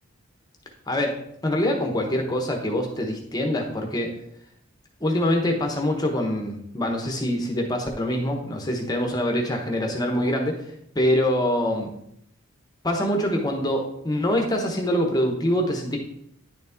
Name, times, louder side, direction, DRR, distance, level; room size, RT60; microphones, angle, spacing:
voice 1, 0.9-1.2 1.4-4.1 5.0-10.6 10.9-11.9 12.8-16.0, left 1 dB, 15° left, 2 dB, 1.0 m, -24 dB
10.0 x 4.1 x 3.5 m, 0.73 s
head